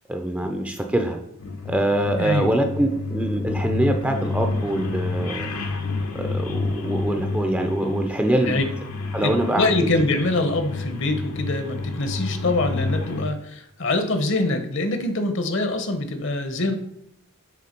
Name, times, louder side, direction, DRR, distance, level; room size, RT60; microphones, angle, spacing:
voice 1, 0.1-1.2 1.7-5.5 6.1-8.5 9.1-9.9, right 1 dB, 5° right, 5 dB, 0.5 m, -24 dB
sound 1, 1.4-13.2, left 3 dB, 85° left, 1.2 m, -29 dB
voice 2, 2.2-2.6 8.4-8.6 9.2-9.3 9.6-16.7, left 2 dB, 55° left, 8 dB, 0.9 m, -24 dB
6.7 x 3.7 x 5.2 m, 0.78 s
head